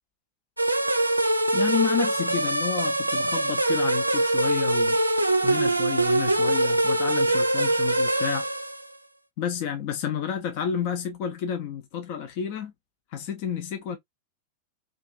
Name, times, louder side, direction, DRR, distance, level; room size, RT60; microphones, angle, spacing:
sound 1, 0.6-8.9, right 1 dB, 85° right, 0.3 m, -23 dB
voice 1, 1.5-5.0 5.4-8.5 9.4-12.7 13.1-14.0, left 8 dB, 45° left, 0.5 m, -30 dB
2.5 x 2.3 x 2.3 m
figure-of-eight pair, 90°, 0 cm